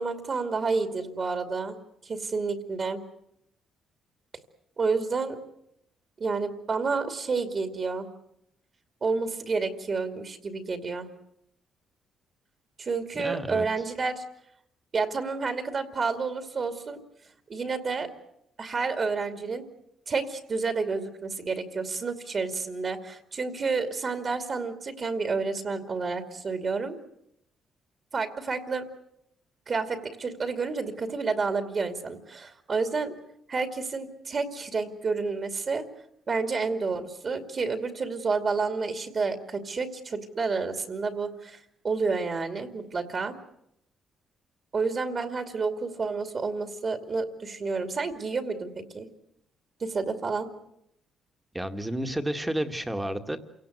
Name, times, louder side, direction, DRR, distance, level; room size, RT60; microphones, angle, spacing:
voice 1, 0.0-1.8 2.0-3.0 4.8-5.4 6.2-8.1 9.0-11.1 12.8-14.2 14.9-17.0 17.5-18.1 18.6-19.6 20.1-27.0 28.1-28.8 29.7-33.2 33.5-35.9 36.3-41.6 41.8-43.3 44.7-49.1 49.8-50.5, right 4 dB, 40° right, 7 dB, 2.5 m, -30 dB
voice 2, 13.1-13.7 51.5-53.4, right 1 dB, 10° right, 7 dB, 1.9 m, -31 dB
28.0 x 17.5 x 8.1 m, 0.78 s
cardioid pair, 90°, 0 cm